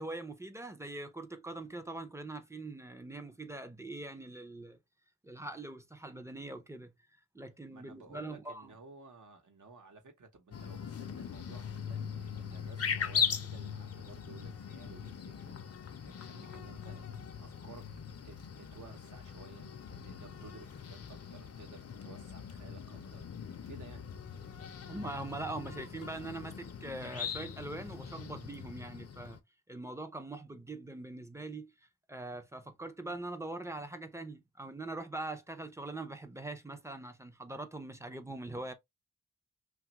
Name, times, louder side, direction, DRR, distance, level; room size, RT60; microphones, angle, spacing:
voice 1, 0.0-4.8 5.2-6.9 7.3-8.7 24.9-29.4 29.7-31.7 32.1-38.7, right 2 dB, 10° right, 0.5 m, -42 dB
voice 2, 7.7-15.7 16.0-17.0 17.4-17.9 18.2-23.4 23.7-24.1, right 4 dB, 65° right, 0.9 m, -54 dB
sound 1, 10.5-29.4, left 7 dB, 50° left, 0.5 m, -40 dB
3.0 x 2.3 x 2.8 m
wide cardioid pair, 115°, 33 cm